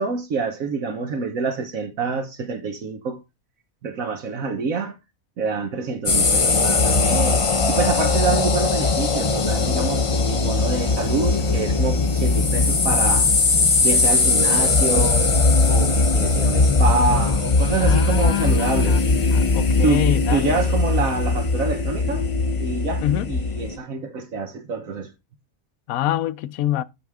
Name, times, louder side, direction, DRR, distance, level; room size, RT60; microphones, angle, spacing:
voice 1, 0.0-3.2 3.8-5.0 5.4-13.3 13.8-15.2 15.7-19.0 19.8-22.3 22.6-25.1, right 4 dB, 70° right, 1.4 m, -26 dB
sound 1, 6.1-23.8, left 3 dB, 30° left, 0.6 m, -19 dB
voice 2, 17.8-20.6 23.0-23.3 25.9-26.8, left 12 dB, 75° left, 1.1 m, -26 dB
13.0 x 4.7 x 3.5 m
omnidirectional pair, 1.5 m